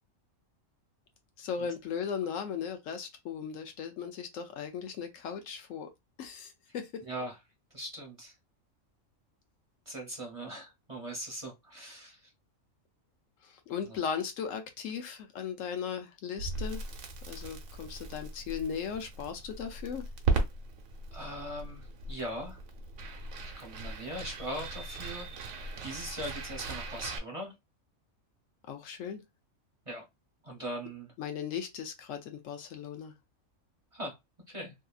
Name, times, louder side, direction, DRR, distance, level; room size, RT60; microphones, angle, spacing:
voice 1, 1.4-5.9 6.2-7.0 13.4-16.8 17.3-20.1 28.7-29.2 31.2-33.1, left 7 dB, 75° left, 1.0 m, -37 dB
voice 2, 7.0-7.3 7.7-8.3 9.9-12.3 13.9-14.0 21.1-22.6 23.6-25.3 25.8-27.5 29.9-30.0 30.4-31.1 33.9-34.1 34.5-34.7, equal, 30° right, 0.8 m, -40 dB
Crackle, 16.4-27.2, right 3 dB, 85° right, 1.1 m, -37 dB
2.7 x 2.7 x 2.3 m
omnidirectional pair, 1.4 m